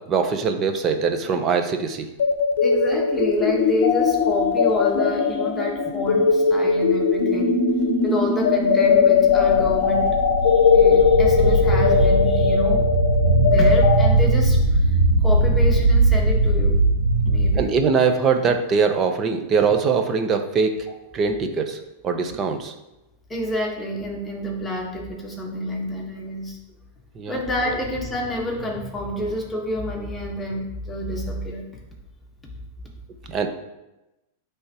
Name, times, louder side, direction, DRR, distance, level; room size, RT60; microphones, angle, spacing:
voice 1, 0.0-2.1 17.6-20.8 21.1-22.7 27.2-27.4 33.3-33.5, right 5 dB, 30° right, 7 dB, 0.7 m, -22 dB
sound 1, 2.2-14.1, left 5 dB, 80° left, 0.7 m, -19 dB
voice 2, 2.6-7.6 8.0-10.1 10.5-12.9 13.4-16.8 17.2-17.8 23.3-26.6 27.3-31.6, left 1 dB, 10° left, -2 dB, 1.4 m, -28 dB
sound 2, 9.3-17.6, right 2 dB, 85° right, 2.1 m, -19 dB
9.7 x 3.5 x 3.0 m, 0.98 s
hypercardioid pair, 120°, 0 cm